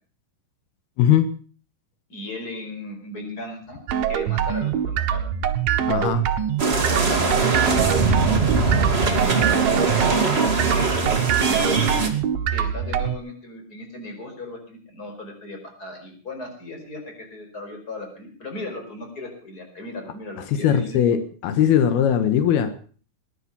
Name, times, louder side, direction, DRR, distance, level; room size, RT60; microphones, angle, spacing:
voice 1, 1.0-1.3 5.9-6.3 20.5-22.7, left 9 dB, 85° left, 10 dB, 3.3 m, -20 dB
voice 2, 2.1-3.8 4.1-5.4 6.6-9.8 10.0-11.9 12.5-21.2, left 2 dB, 25° left, 4 dB, 5.2 m, -37 dB
sound 1, 3.9-13.2, right 9 dB, 70° right, 2.9 m, -24 dB
sound 2, 6.6-12.1, right 3 dB, 20° right, 1.8 m, -22 dB
20.5 x 11.0 x 5.5 m, 0.42 s
omnidirectional pair, 4.3 m